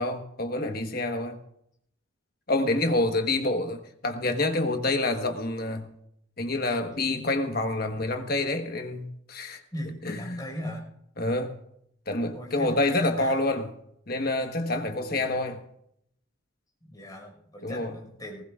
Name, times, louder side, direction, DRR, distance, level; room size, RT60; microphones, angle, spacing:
voice 1, 0.0-1.4 2.5-5.9 6.4-9.6 10.0-10.4 11.2-11.5 12.1-13.7 14.1-15.6 17.6-18.0, left 2 dB, 45° left, 1.3 m, -27 dB
voice 2, 2.9-3.2 9.7-10.8 12.3-12.8 13.2-13.4 14.8-15.3 16.8-18.4, equal, 20° left, 5.1 m, -39 dB
20.0 x 19.5 x 2.5 m
head